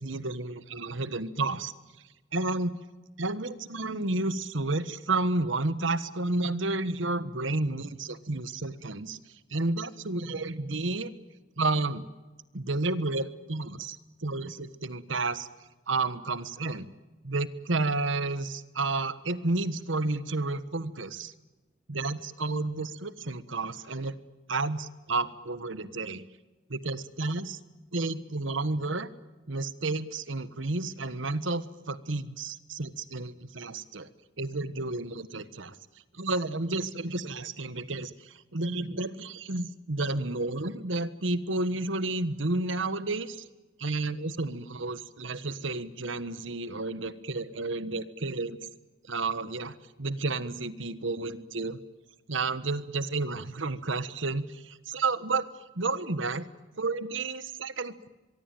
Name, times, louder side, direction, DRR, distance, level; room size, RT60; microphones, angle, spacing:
voice 1, 0.0-1.7 2.3-2.7 3.2-9.2 9.5-11.1 11.6-12.1 12.5-15.5 15.9-16.9 17.2-21.3 21.9-24.1 24.5-26.2 26.7-27.6 27.9-29.1 29.5-34.1 34.4-35.8 36.1-43.4 43.8-48.6 49.1-51.8 52.3-55.5 55.7-56.5 56.8-58.1, right 2 dB, 75° right, 14 dB, 1.4 m, -31 dB
24.0 x 23.5 x 9.2 m, 1.2 s
head